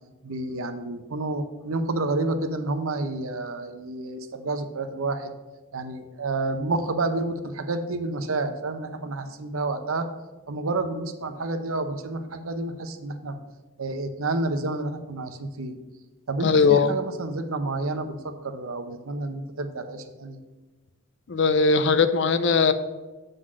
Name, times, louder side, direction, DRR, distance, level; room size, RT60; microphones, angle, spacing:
voice 1, 0.2-5.3 5.7-10.1 10.5-13.4 13.8-15.8 16.3-20.4, right 2 dB, 85° right, 9 dB, 0.7 m, -29 dB
voice 2, 16.4-16.9 21.3-22.7, left 4 dB, 60° left, 11 dB, 0.5 m, -19 dB
7.7 x 4.0 x 6.2 m, 1.2 s
head